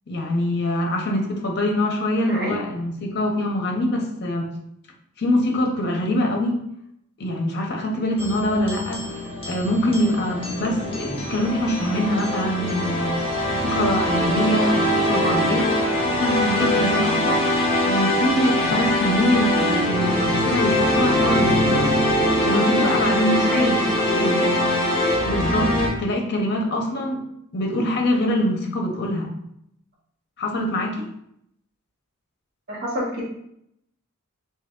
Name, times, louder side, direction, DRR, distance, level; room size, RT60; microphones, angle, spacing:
voice 1, 0.1-4.5 5.2-6.6 7.2-13.2 13.5-17.5 17.8-21.9 22.4-23.8 24.1-24.5 25.2-27.2 27.5-29.3 30.4-31.1, left 1 dB, 50° left, 1 dB, 0.7 m, -24 dB
voice 2, 2.3-2.6 23.4-23.8 32.7-33.2, equal, 45° right, -4 dB, 1.2 m, -28 dB
sound 1, 8.2-25.9, left 1 dB, 25° left, 0.9 m, -22 dB
3.4 x 2.8 x 3.6 m, 0.75 s
head